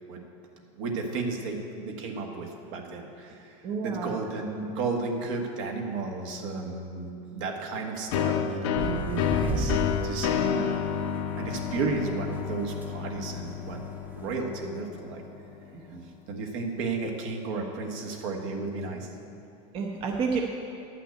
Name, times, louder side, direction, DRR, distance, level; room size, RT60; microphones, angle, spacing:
voice 1, 0.7-10.7 11.3-13.8 14.2-15.2 16.3-19.1, right 3 dB, 65° right, 2 dB, 1.6 m, -33 dB
voice 2, 3.6-4.2 10.6-10.7 15.7-16.1 19.7-20.4, right 5 dB, 30° right, 0 dB, 0.9 m, -30 dB
sound 1, 8.1-15.6, left 8 dB, 60° left, 0.7 m, -30 dB
sound 2, 8.8-14.3, right 3 dB, 10° right, 0.4 m, -37 dB
10.5 x 5.9 x 8.2 m, 2.6 s
supercardioid pair, 155°, 18 cm